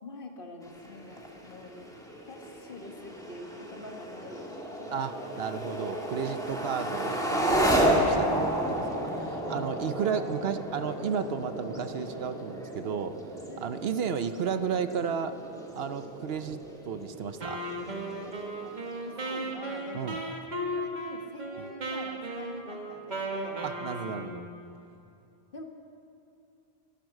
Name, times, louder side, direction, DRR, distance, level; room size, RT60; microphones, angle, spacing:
voice 1, 0.0-1.9 2.3-5.4 9.3-10.0 13.5-13.7 19.1-23.7 24.0-24.8 25.5-25.6, left 2 dB, 55° left, 3 dB, 1.6 m, -46 dB
sound 1, 0.6-19.4, right 1 dB, 5° left, 1.8 m, -32 dB
voice 2, 4.9-13.2 13.6-15.4 15.7-17.6 19.9-20.2 21.6-21.7 23.6-24.4, right 7 dB, 70° right, 11 dB, 0.9 m, -33 dB
Wind instrument woodwind instrument, 17.4-24.5, right 1 dB, 45° right, 1.7 m, -36 dB
22.0 x 9.5 x 6.4 m, 2.7 s
omnidirectional pair, 1.1 m